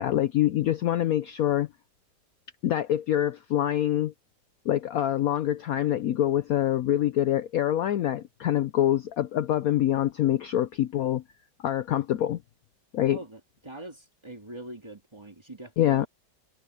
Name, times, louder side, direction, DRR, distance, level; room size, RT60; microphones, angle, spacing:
voice 1, 0.0-1.7 2.6-4.1 4.7-11.2 11.6-12.4 12.9-13.2 15.8-16.1, left 12 dB, 70° left, 0.9 m, -25 dB
voice 2, 13.1-16.1, right 1 dB, 15° right, 1.9 m, -43 dB
omnidirectional pair, 1.9 m